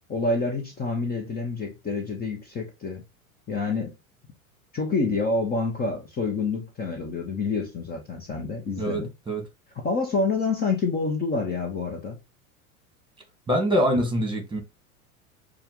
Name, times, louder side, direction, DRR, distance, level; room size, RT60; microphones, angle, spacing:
voice 1, 0.1-3.0 3.5-3.9 4.7-9.1 9.8-12.2, left 3 dB, 20° left, 1.0 m, -27 dB
voice 2, 8.8-9.4 13.5-14.6, equal, 10° right, 1.6 m, -24 dB
6.9 x 2.5 x 3.0 m
hypercardioid pair, 105°, 42 cm